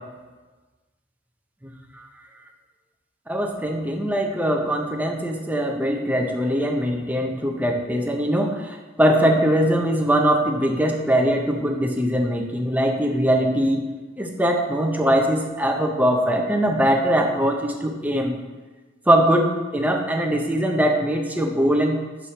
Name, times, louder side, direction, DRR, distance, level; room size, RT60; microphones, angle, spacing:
voice 1, 3.3-13.8 14.2-18.3 19.1-22.0, equal, 10° right, 2 dB, 0.7 m, -21 dB
5.7 x 4.9 x 5.6 m, 1.3 s
head